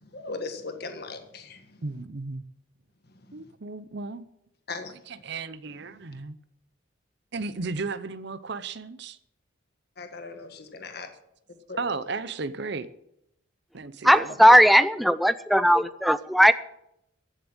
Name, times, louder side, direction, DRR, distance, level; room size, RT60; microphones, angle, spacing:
voice 1, 0.0-1.6 4.7-4.9 10.0-11.1 11.7-11.8, left 3 dB, 50° left, 6 dB, 1.7 m, -38 dB
voice 2, 1.8-2.4 3.3-4.3 5.1-6.4 7.3-9.2 11.8-12.9 13.7-14.5, right 3 dB, 60° right, 14 dB, 0.8 m, -34 dB
voice 3, 14.0-16.5, equal, ahead, 13 dB, 0.4 m, -18 dB
15.0 x 7.2 x 8.9 m, 0.78 s
head